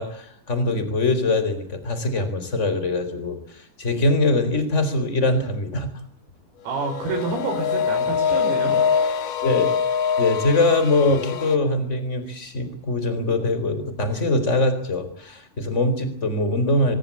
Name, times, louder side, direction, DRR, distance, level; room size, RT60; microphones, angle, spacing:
voice 1, 0.0-3.4 3.8-5.9 9.4-9.7 10.2-16.9, left 2 dB, 15° left, 10 dB, 3.5 m, -22 dB
voice 2, 6.6-9.2, right 3 dB, 75° right, 0 dB, 8.3 m, -29 dB
sound 1, 6.8-11.6, left 7 dB, 85° left, 1.8 m, -24 dB
24.0 x 21.5 x 8.6 m, 0.64 s
omnidirectional pair, 6.0 m